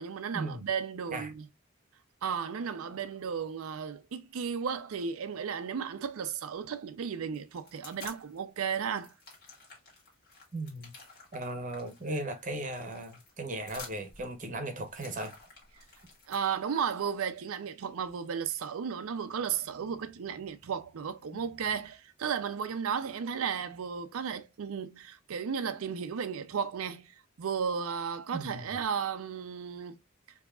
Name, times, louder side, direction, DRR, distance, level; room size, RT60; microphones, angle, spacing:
voice 1, 0.0-1.5 2.2-9.1 16.3-30.0, right 7 dB, 75° right, 0.4 m, -34 dB
sound 1, 7.3-8.4 8.7-16.6, left 3 dB, 45° left, 1.6 m, -51 dB
voice 2, 10.5-10.9 11.3-15.4 28.3-28.7, right 2 dB, 35° right, 0.8 m, -37 dB
4.6 x 2.8 x 2.3 m
head